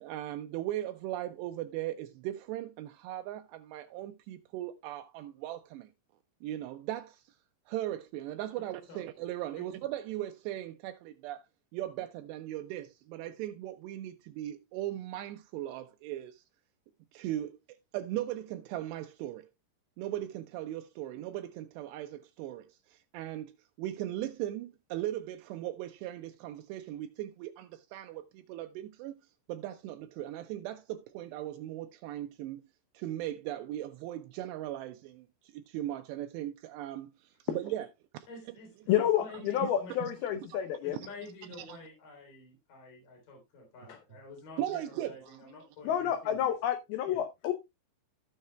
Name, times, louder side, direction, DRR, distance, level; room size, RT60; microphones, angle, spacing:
voice 1, 0.0-5.9 6.4-7.4 7.7-11.4 11.7-16.4 17.1-19.5 20.0-29.2 29.5-32.6 32.9-37.9 38.1-38.3 39.3-39.7 40.0-40.1 40.9-41.1 41.6-41.8 44.6-45.4, right 13 dB, 85° right, 2.4 m, -38 dB
voice 2, 38.3-38.7 39.0-39.9 40.8-46.5 47.1-47.2, left 3 dB, 45° left, 4.7 m, -49 dB
voice 3, 38.9-41.0 43.9-44.0 45.8-47.5, left 10 dB, 80° left, 2.2 m, -29 dB
15.5 x 6.5 x 2.2 m
omnidirectional pair, 5.5 m